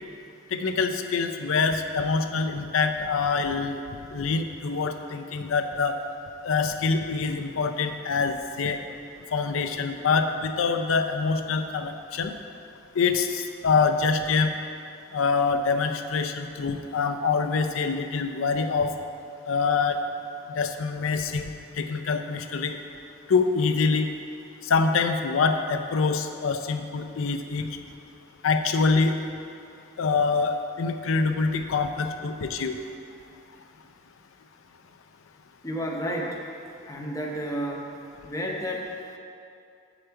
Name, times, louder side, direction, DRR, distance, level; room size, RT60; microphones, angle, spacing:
voice 1, 0.5-3.8 4.1-6.0 6.4-8.8 9.3-12.3 13.0-14.5 15.1-18.9 19.5-20.0 20.5-21.5 21.8-22.8 23.3-24.1 24.6-27.7 28.4-29.2 30.0-32.7, left 4 dB, 80° left, 7 dB, 0.5 m, -25 dB
voice 2, 35.6-36.5 36.9-37.9 38.2-39.0, equal, 15° left, -1 dB, 0.7 m, -31 dB
7.8 x 5.0 x 4.5 m, 2.5 s
head